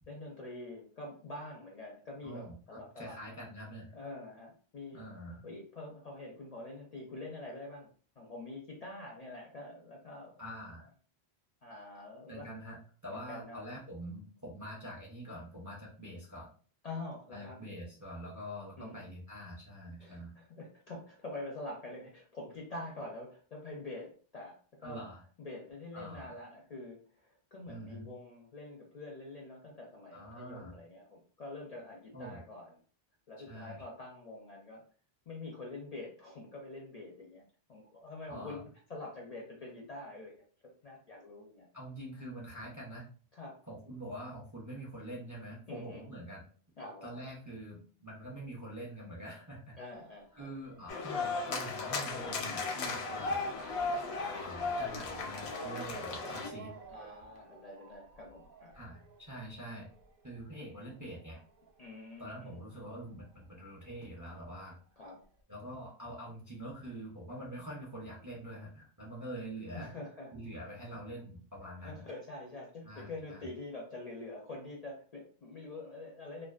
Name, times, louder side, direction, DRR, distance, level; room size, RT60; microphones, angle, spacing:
voice 1, 0.1-3.2 3.9-5.0 5.4-7.9 8.2-10.3 11.6-12.5 13.1-13.6 16.8-17.6 18.8-19.0 20.0-25.1 25.4-32.8 33.3-34.8 35.3-37.4 37.7-40.4 40.8-41.7 43.3-43.6 45.7-46.1 46.8-47.2 49.8-50.5 56.9-58.8 61.8-62.6 65.0-65.2 69.7-70.4 71.8-76.5, left 2 dB, 55° left, -2 dB, 0.5 m, -46 dB
voice 2, 2.2-3.9 4.9-5.5 10.4-10.9 12.3-16.5 17.3-20.3 24.8-25.2 25.9-26.4 27.7-28.1 30.1-30.7 32.1-32.4 33.4-33.8 38.3-38.6 41.7-43.1 43.7-46.5 47.0-49.8 50.3-53.4 54.2-56.7 58.7-59.9 60.2-61.4 62.2-64.8 65.5-69.9 70.3-72.1 72.8-73.5, right 1 dB, 25° right, -3 dB, 0.4 m, -45 dB
Motor vehicle (road) / Siren, 49.9-63.0 63.2-64.4 65.0-65.1 65.4-65.5, right 4 dB, 65° right, 0.7 m, -53 dB
sound 1, 50.9-56.5, left 3 dB, 85° left, 0.8 m, -36 dB
2.5 x 2.2 x 2.3 m, 0.43 s
omnidirectional pair, 1.1 m